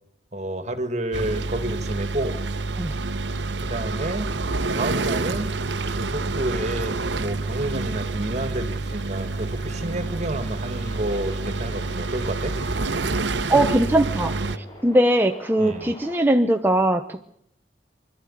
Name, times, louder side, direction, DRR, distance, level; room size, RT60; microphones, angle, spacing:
voice 1, 0.3-2.4 3.6-4.3 4.6-5.6 5.9-12.5 15.6-15.9, right 1 dB, 40° right, 9 dB, 1.9 m, -30 dB
sound 1, 1.1-14.6, right 3 dB, 85° right, 1.0 m, -28 dB
sound 2, 3.7-16.2, left 1 dB, 20° left, 5.4 m, -47 dB
voice 2, 13.5-17.2, right 1 dB, 10° right, 5 dB, 0.8 m, -21 dB
25.0 x 12.5 x 9.8 m, 0.74 s
head